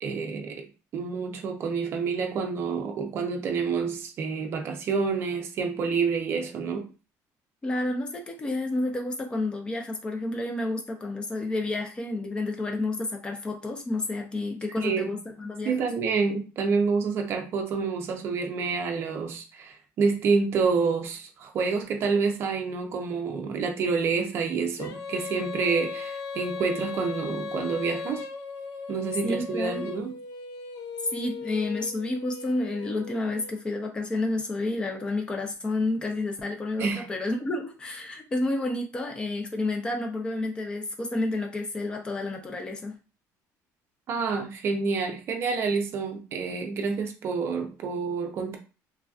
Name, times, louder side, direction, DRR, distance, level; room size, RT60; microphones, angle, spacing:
voice 1, 0.0-0.7 0.9-6.9 14.8-15.2 15.6-28.3 28.9-30.2 36.8-37.1 44.1-48.6, right 5 dB, 40° right, 0.5 m, -28 dB
voice 2, 7.6-15.9 29.2-29.9 31.1-43.0, left 2 dB, 15° left, 0.5 m, -30 dB
Female singing, 24.8-33.6, left 5 dB, 80° left, 0.5 m, -37 dB
3.2 x 2.5 x 2.4 m
cardioid pair, 175°, 7 cm